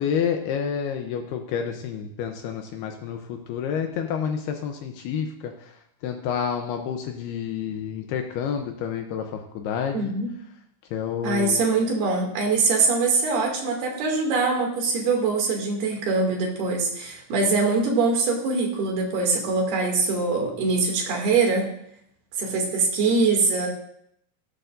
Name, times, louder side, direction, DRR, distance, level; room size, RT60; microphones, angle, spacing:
voice 1, 0.0-5.7 6.0-10.1 10.9-11.6, left 7 dB, 75° left, 5 dB, 2.5 m, -29 dB
voice 2, 9.9-10.3 11.2-21.7 22.4-23.7, right 4 dB, 65° right, 0 dB, 4.3 m, -23 dB
16.0 x 13.5 x 2.6 m, 0.71 s
omnidirectional pair, 5.1 m